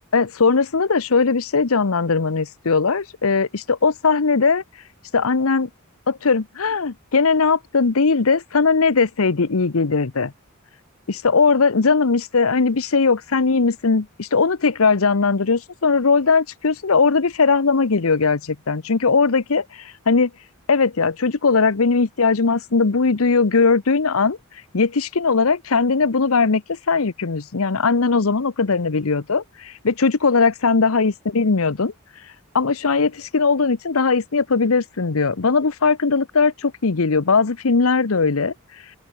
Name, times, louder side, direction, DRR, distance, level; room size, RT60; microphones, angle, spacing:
voice 1, 0.1-4.6 5.1-5.7 6.1-10.3 11.1-20.3 20.7-24.4 24.7-31.9 32.5-38.5, left 4 dB, 70° left, 0.9 m, -19 dB
open air
head